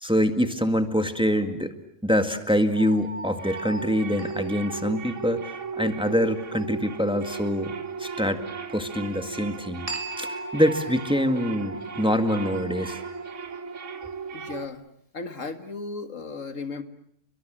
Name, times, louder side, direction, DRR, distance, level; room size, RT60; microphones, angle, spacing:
voice 1, 0.0-1.7 2.0-7.7 8.0-8.4 8.7-9.9 10.2-13.0, equal, 5° right, 8 dB, 1.9 m, -25 dB
sound 1, 2.7-14.7, right 5 dB, 75° right, 1.8 m, -36 dB
sound 2, 2.8-5.6 9.9-13.4, right 2 dB, 25° right, 3.8 m, -39 dB
voice 2, 14.3-14.8 15.1-16.8, left 4 dB, 90° left, 9 dB, 2.3 m, -35 dB
30.0 x 24.0 x 7.6 m, 0.68 s
omnidirectional pair, 1.3 m